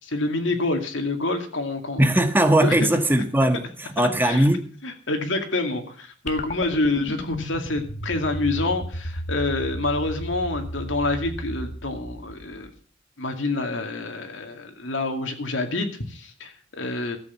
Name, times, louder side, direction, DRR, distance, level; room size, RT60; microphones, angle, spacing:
voice 1, 0.0-2.1 2.6-2.9 4.0-4.5 4.8-12.7 13.2-17.2, left 2 dB, 75° left, 2.3 m, -27 dB
voice 2, 2.0-4.6, right 1 dB, 10° right, 1.3 m, -20 dB
sound 1, 6.3-12.8, equal, 40° left, 1.9 m, -34 dB
13.0 x 7.8 x 7.3 m
head